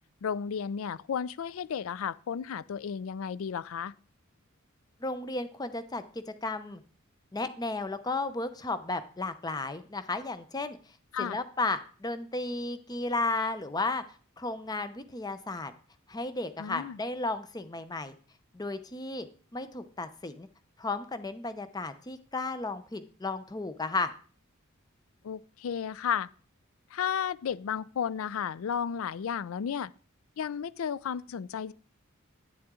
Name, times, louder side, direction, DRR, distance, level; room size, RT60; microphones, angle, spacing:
voice 1, 0.2-3.9 11.1-11.4 16.6-17.0 25.2-26.3 26.9-29.9 30.4-31.7, left 7 dB, 75° left, 0.4 m, -33 dB
voice 2, 5.0-6.8 7.3-10.8 11.2-14.0 14.4-15.7 16.1-18.1 18.5-19.3 19.5-20.5 20.8-24.1, left 3 dB, 20° left, 0.6 m, -34 dB
9.4 x 7.6 x 3.7 m
head